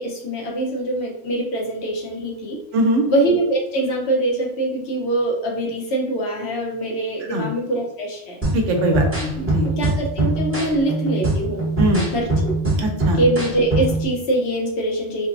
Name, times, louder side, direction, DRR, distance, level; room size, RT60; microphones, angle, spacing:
voice 1, 0.0-2.6 3.0-8.4 9.6-11.7 12.1-12.5 13.1-15.3, right 1 dB, 65° left, 0 dB, 0.9 m, -23 dB
voice 2, 2.7-3.0 7.3-7.5 8.5-9.7 11.8-12.1 12.8-13.2, right 1 dB, 75° right, 2 dB, 1.0 m, -21 dB
sound 1, 8.4-14.1, right 2 dB, 10° right, 0.8 m, -22 dB
4.4 x 2.0 x 2.5 m, 0.81 s
omnidirectional pair, 1.3 m